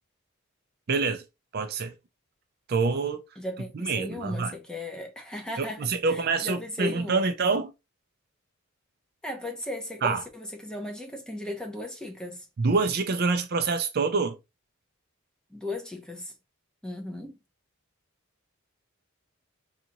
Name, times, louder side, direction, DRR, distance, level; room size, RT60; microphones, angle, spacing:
voice 1, 0.9-1.2 1.5-1.9 2.7-3.2 3.7-4.5 5.6-7.7 10.0-10.2 12.6-14.4, right 4 dB, 45° right, 0.4 m, -26 dB
voice 2, 3.4-7.3 9.2-12.5 15.5-16.3 16.8-17.4, left 1 dB, 5° left, 0.7 m, -36 dB
3.9 x 2.4 x 2.8 m
head